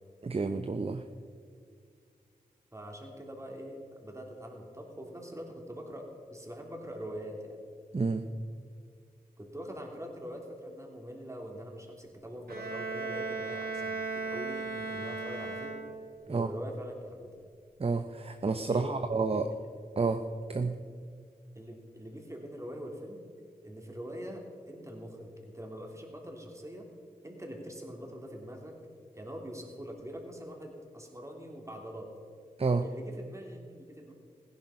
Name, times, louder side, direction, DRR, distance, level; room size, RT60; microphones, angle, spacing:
voice 1, 0.2-1.0 7.9-8.2 16.3-16.5 17.8-19.5 20.0-20.7 32.6-32.8, right 4 dB, 40° right, 8 dB, 0.7 m, -30 dB
voice 2, 2.7-7.6 9.4-15.8 16.3-17.3 18.6-18.9 19.3-19.5 21.5-23.2 23.6-26.9 27.2-28.8 29.1-32.1 32.8-34.1, equal, 20° right, 1 dB, 3.2 m, -43 dB
Bowed string instrument, 12.5-16.3, right 3 dB, 80° right, 2.0 m, -36 dB
15.5 x 11.0 x 5.8 m, 2.2 s
cardioid pair, 45°, 16 cm